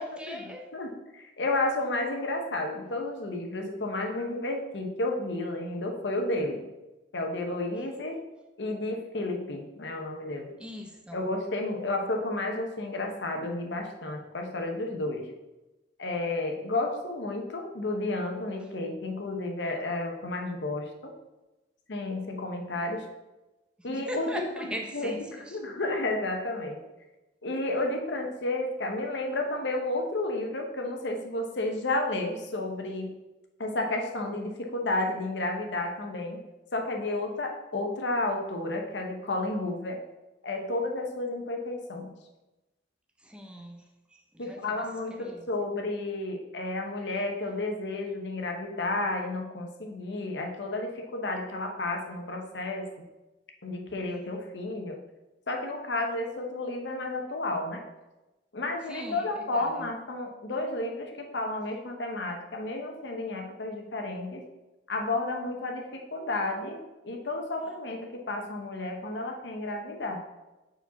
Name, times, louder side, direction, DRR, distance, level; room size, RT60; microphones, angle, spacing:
voice 1, 0.0-0.7 10.6-11.2 18.6-18.7 23.9-25.6 43.2-44.8 45.1-45.5 58.9-59.9, equal, 5° right, 2 dB, 0.7 m, -40 dB
voice 2, 0.7-6.6 7.1-8.2 8.6-10.5 11.1-15.2 16.0-21.1 21.9-23.0 23.8-24.3 24.6-24.7 24.9-25.1 25.5-26.8 27.4-33.1 33.6-36.4 36.7-40.0 40.4-42.1 44.4-52.9 53.6-55.0 55.5-57.8 58.5-64.4 64.9-70.2, left 2 dB, 80° left, 2 dB, 0.9 m, -32 dB
4.7 x 4.4 x 5.7 m, 1.0 s
head